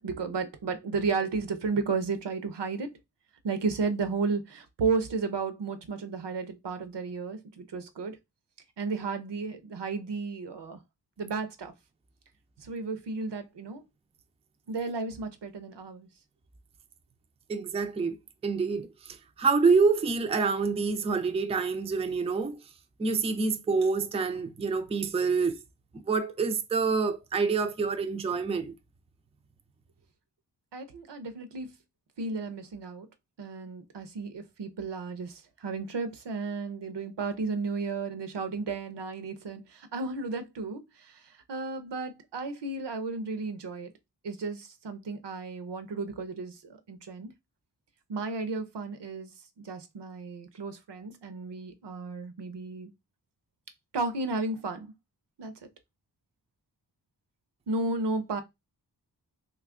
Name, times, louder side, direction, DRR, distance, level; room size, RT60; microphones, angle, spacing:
voice 1, 0.0-2.9 3.4-8.2 8.8-10.8 11.2-11.7 12.6-13.8 14.7-16.1 30.7-31.7 32.2-33.1 33.4-41.2 41.5-43.9 44.2-46.6 46.9-47.3 48.1-49.3 49.6-52.9 53.9-54.9 55.4-55.5 57.7-58.4, right 4 dB, 75° right, 0.7 m, -33 dB
voice 2, 17.5-18.2 18.4-22.6 23.0-25.6 25.9-28.7, right 4 dB, 15° right, 0.4 m, -27 dB
2.9 x 2.4 x 3.6 m
cardioid pair, 50°, 42 cm